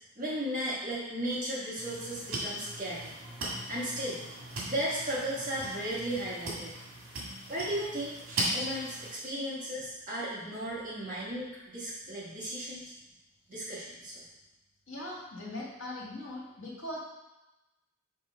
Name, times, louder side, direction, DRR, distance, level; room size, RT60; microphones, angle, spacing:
voice 1, 0.2-3.1 3.7-4.2 4.7-6.7 7.5-8.2 8.5-12.9 13.5-14.2, right 1 dB, 35° right, -7 dB, 1.4 m, -35 dB
sound 1, 1.8-9.1, right 1 dB, 75° right, 1.8 m, -38 dB
voice 2, 14.9-17.0, left 1 dB, 60° left, -5 dB, 1.8 m, -40 dB
6.1 x 3.1 x 5.3 m, 1.0 s
head